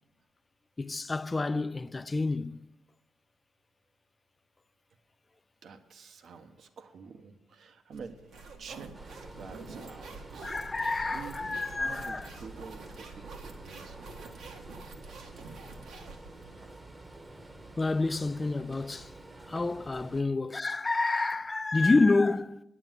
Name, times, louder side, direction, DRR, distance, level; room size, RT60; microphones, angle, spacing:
voice 1, 0.8-2.6 10.4-12.3 17.8-19.1 19.5-22.6, left 3 dB, 20° left, 0.4 m, -28 dB
voice 2, 5.6-8.1 8.6-8.9 9.4-10.6 11.1-14.4 19.5-19.6, right 5 dB, 60° right, 1.0 m, -48 dB
sound 1, 7.9-16.7, right 4 dB, 75° right, 1.6 m, -47 dB
sound 2, 8.9-20.2, right 2 dB, 20° right, 1.0 m, -49 dB
9.6 x 9.0 x 7.4 m
cardioid pair, 90°, 0 cm